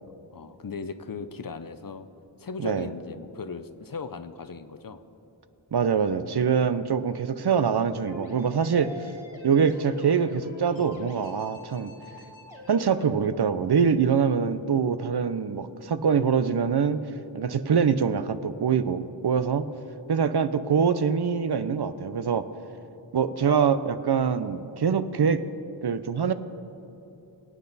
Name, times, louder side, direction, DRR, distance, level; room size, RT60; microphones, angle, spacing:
voice 1, 0.3-2.1 2.4-5.0, left 5 dB, 45° left, 11 dB, 0.7 m, -37 dB
voice 2, 5.7-8.9 9.4-11.9 12.7-17.0 17.3-19.7 20.1-22.5 23.1-25.4 25.8-26.3, right 6 dB, 55° right, 12 dB, 0.6 m, -24 dB
sound 1, 8.1-13.1, left 2 dB, 85° left, 2.4 m, -45 dB
23.5 x 8.6 x 4.1 m, 3.0 s
wide cardioid pair, 80°, 46 cm